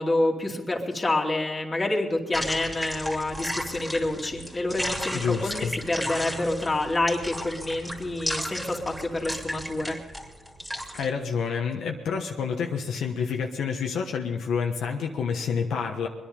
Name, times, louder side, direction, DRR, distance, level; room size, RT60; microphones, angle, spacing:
voice 1, 0.0-10.0, left 2 dB, 25° left, 0 dB, 2.6 m, -28 dB
sound 1, 2.3-11.1, equal, 5° right, 2.8 m, -34 dB
voice 2, 5.1-5.7 10.9-16.1, left 6 dB, 70° left, 2 dB, 1.3 m, -28 dB
22.5 x 10.5 x 5.4 m, 1.2 s
cardioid pair, 90°, 0 cm